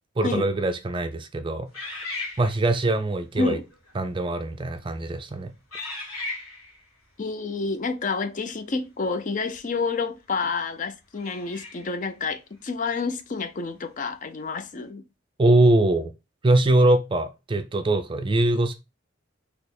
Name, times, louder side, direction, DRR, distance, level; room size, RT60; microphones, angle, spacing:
voice 1, 0.2-2.0 2.4-3.6 4.0-5.5 15.4-16.1 16.4-18.7, right 2 dB, 25° right, 0.4 m, -22 dB
sound 1, 1.7-2.9 3.7-3.9 4.6-4.9 5.7-6.8 9.5-9.6 11.1-12.0, left 2 dB, 90° left, 1.8 m, -36 dB
voice 2, 7.2-15.0, left 4 dB, 40° left, 0.4 m, -29 dB
4.2 x 2.9 x 4.1 m
head